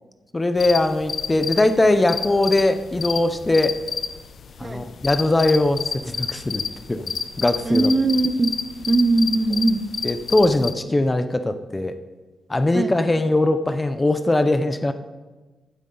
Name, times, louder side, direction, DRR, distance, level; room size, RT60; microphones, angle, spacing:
voice 1, 0.3-3.8 4.6-6.6 6.9-7.1 7.4-7.9 10.0-11.9 12.5-14.9, left 2 dB, 15° left, 9 dB, 0.6 m, -20 dB
sound 1, 0.6-10.7, left 6 dB, 60° left, 0.7 m, -30 dB
voice 2, 7.6-8.5 8.9-9.8 12.7-13.0, right 2 dB, 25° right, 10 dB, 0.6 m, -20 dB
15.0 x 9.4 x 3.9 m, 1.3 s
wide cardioid pair, 130°, 0 cm